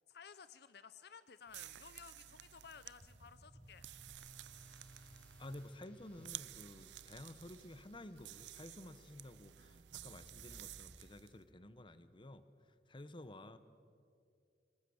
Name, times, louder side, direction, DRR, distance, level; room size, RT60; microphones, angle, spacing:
voice 1, 0.0-3.8, left 6 dB, 65° left, 14 dB, 0.6 m, -56 dB
sound 1, 1.5-11.4, right 14 dB, 75° right, 0.5 m, -53 dB
sound 2, 2.4-10.9, right 1 dB, 30° right, 4.4 m, -62 dB
sound 3, 4.1-8.9 9.6-10.1, equal, 10° left, 3.8 m, -70 dB
voice 2, 5.4-12.5 12.9-13.6, left 1 dB, 30° left, 13 dB, 0.9 m, -52 dB
24.5 x 19.5 x 7.1 m, 2.4 s
head